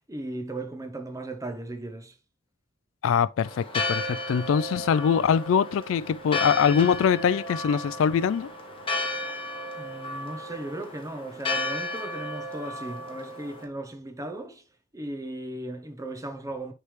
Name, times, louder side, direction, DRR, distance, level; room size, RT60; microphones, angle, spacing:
voice 1, 0.1-2.1 9.8-14.6 14.9-16.7, right 1 dB, 15° right, 0.8 m, -36 dB
voice 2, 3.0-8.5, left 7 dB, 75° left, 0.3 m, -23 dB
Church bell, 3.4-13.6, left 2 dB, 25° left, 1.1 m, -33 dB
9.6 x 3.4 x 3.1 m
head